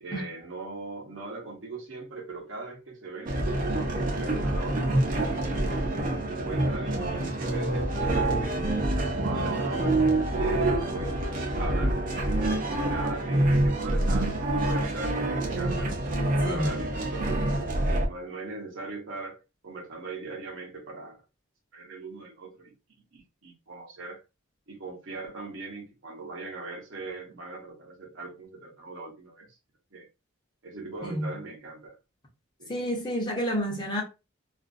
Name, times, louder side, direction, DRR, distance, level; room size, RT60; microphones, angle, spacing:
voice 1, 0.0-8.7 9.2-16.0 16.4-21.2 21.7-22.7 23.1-24.2 24.7-29.6 29.9-30.1 30.6-32.0 32.6-32.7, right 3 dB, 65° right, 0.8 m, -40 dB
sound 1, 3.3-18.1, right 1 dB, 40° right, 0.5 m, -26 dB
voice 2, 31.0-31.3 32.7-34.0, equal, 20° left, 0.8 m, -29 dB
2.5 x 2.3 x 2.4 m
head